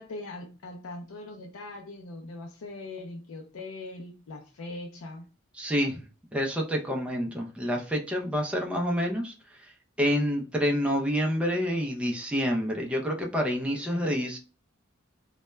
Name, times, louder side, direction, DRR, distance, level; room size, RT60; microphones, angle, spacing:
voice 1, 0.0-5.3 13.9-14.2, left 2 dB, 85° left, 2 dB, 0.4 m, -41 dB
voice 2, 5.6-6.0 6.3-14.4, equal, 5° right, 0 dB, 0.4 m, -28 dB
2.2 x 2.1 x 3.0 m, 0.34 s
head